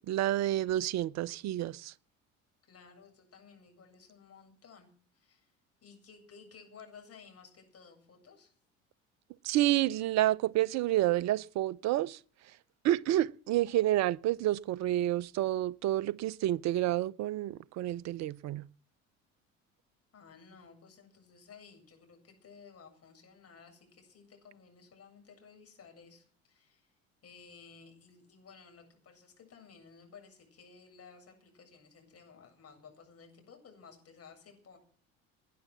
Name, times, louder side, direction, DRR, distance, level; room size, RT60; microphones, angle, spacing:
voice 1, 0.1-1.9 9.4-12.2 12.8-18.7, right 14 dB, 45° right, 0.7 m, -29 dB
voice 2, 2.7-5.5 5.8-8.5 20.1-26.9 27.2-34.8, left 5 dB, 35° left, 7.9 m, -56 dB
19.5 x 10.0 x 5.9 m
figure-of-eight pair, 60°, 40 cm